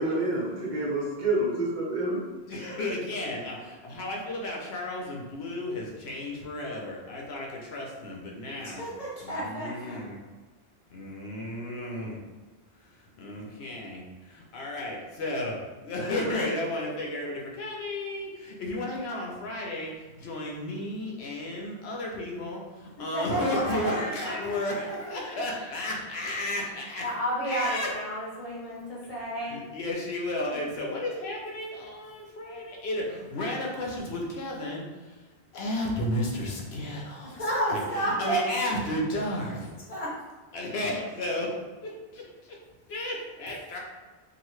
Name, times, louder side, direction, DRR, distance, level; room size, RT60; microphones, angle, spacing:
voice 1, 0.0-2.2, right 2 dB, 50° right, -6 dB, 0.8 m, -28 dB
voice 2, 2.5-8.8 9.2-10.2 10.9-12.2 13.2-14.0 14.5-27.1 27.4-27.9 29.4-35.2 35.5-37.4 37.7-39.8 40.5-42.6 42.9-43.8, left 1 dB, 80° left, -2 dB, 0.9 m, -33 dB
voice 3, 8.6-10.0 23.1-24.6 24.8-25.4 27.0-29.6 30.5-30.6 37.2-38.7 39.9-40.1, right 1 dB, 35° left, -6 dB, 0.9 m, -31 dB
2.9 x 2.5 x 3.1 m, 1.3 s
omnidirectional pair, 1.1 m